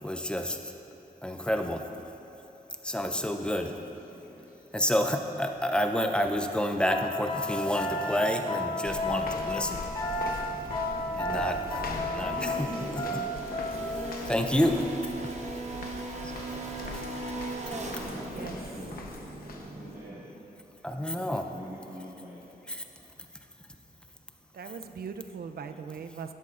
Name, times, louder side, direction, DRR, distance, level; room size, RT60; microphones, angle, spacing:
voice 1, 0.0-0.7 1.2-1.8 2.8-3.8 4.7-10.8 11.1-13.2 13.7-15.4 15.7-15.8 16.2-16.4 16.6-17.3 17.6-18.0 20.8-21.5 22.7-22.8 24.7-24.8, equal, 5° left, 5 dB, 0.4 m, -30 dB
voice 2, 4.1-4.4 10.9-11.4 11.9-13.4 18.0-19.0 19.7-20.2 20.9-22.5, equal, 15° right, -11 dB, 1.7 m, -43 dB
sound 1, 6.9-14.1, left 1 dB, 30° left, 0.8 m, -33 dB
sound 2, 8.7-20.5, right 2 dB, 45° right, 0.7 m, -40 dB
sound 3, 8.8-20.0, left 3 dB, 65° left, 0.8 m, -42 dB
voice 3, 24.5-26.3, right 6 dB, 75° right, 8 dB, 0.5 m, -40 dB
12.0 x 11.0 x 2.5 m, 3.0 s
wide cardioid pair, 175°, 16 cm